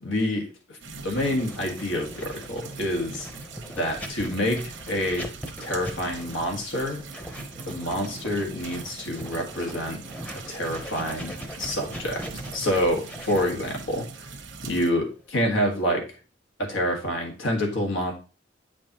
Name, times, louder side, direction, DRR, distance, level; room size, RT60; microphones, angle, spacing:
voice 1, 0.0-0.8 1.0-3.3 3.7-5.3 5.6-7.0 7.7-10.0 10.5-12.3 12.5-14.1 14.6-16.0 16.6-18.1, equal, 90° left, 1 dB, 1.7 m, -27 dB
sound 1, 0.8-14.9, right 4 dB, 80° right, 1.0 m, -41 dB
Writing, 1.2-15.9, equal, 5° left, 0.7 m, -41 dB
8.3 x 5.2 x 2.9 m, 0.34 s
head